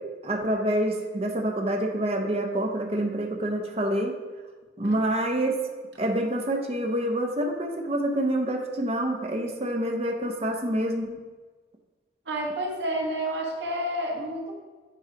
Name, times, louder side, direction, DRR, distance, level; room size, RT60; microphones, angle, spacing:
voice 1, 0.2-4.1 4.8-5.5 6.0-11.2, right 1 dB, 35° right, 2 dB, 0.7 m, -27 dB
voice 2, 12.3-14.6, right 1 dB, 70° right, -1 dB, 1.4 m, -30 dB
8.2 x 3.1 x 5.1 m, 1.3 s
head